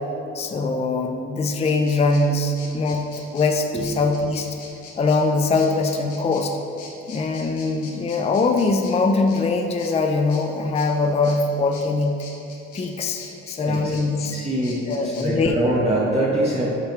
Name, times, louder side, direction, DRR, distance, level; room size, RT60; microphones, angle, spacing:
voice 1, 0.3-3.0 3.3-4.5 5.0-6.6 7.1-12.2 12.7-14.4 14.9-15.6, left 3 dB, 20° left, 4 dB, 0.4 m, -22 dB
sound 1, 1.6-15.4, left 4 dB, 75° left, 1.4 m, -44 dB
voice 2, 13.6-13.9 14.3-16.7, right 1 dB, 20° right, -6 dB, 1.0 m, -24 dB
8.2 x 3.5 x 4.5 m, 3.0 s
cardioid pair, 90°, 30 cm